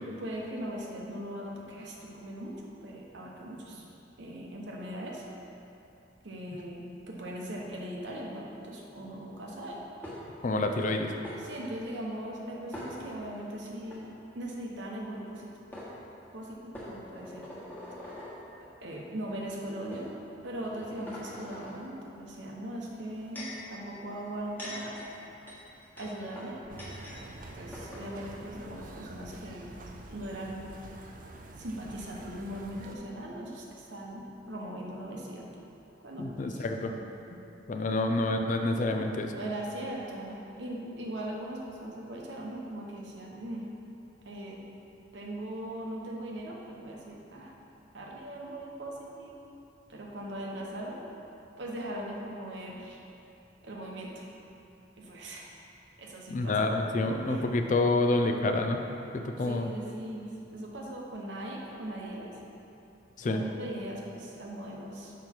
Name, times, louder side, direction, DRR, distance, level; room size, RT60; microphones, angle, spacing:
voice 1, 0.0-3.8 4.2-5.3 6.2-9.8 11.4-14.1 14.3-15.6 16.3-17.5 18.8-20.1 20.4-25.0 26.0-26.6 27.5-29.7 30.1-30.8 31.6-35.5 36.0-36.7 38.9-43.7 44.2-44.6 45.1-47.5 47.9-49.4 49.9-51.0 51.6-53.0 53.6-54.2 55.0-55.5 56.0-56.7 57.2-57.5 59.4-62.3 63.2-65.1, right 1 dB, 75° right, -2 dB, 1.0 m, -39 dB
sound 1, 10.0-10.5 11.2-11.4 12.7-13.4 13.8-14.0 15.3-15.4 15.7-15.9 16.7-18.3 19.1-19.3 19.9-20.0 20.6-21.7 22.9-23.6 24.3-27.2 27.4-27.5 27.7-28.1, left 1 dB, 10° left, 1.4 m, -44 dB
voice 2, 10.4-11.1 36.2-36.9 37.7-39.3 56.3-58.8 59.1-59.7 63.2-63.4, left 2 dB, 45° left, 5 dB, 0.4 m, -28 dB
sound 2, 26.7-33.0, right 2 dB, 45° right, 0.5 m, -46 dB
6.1 x 5.1 x 4.5 m, 2.8 s
head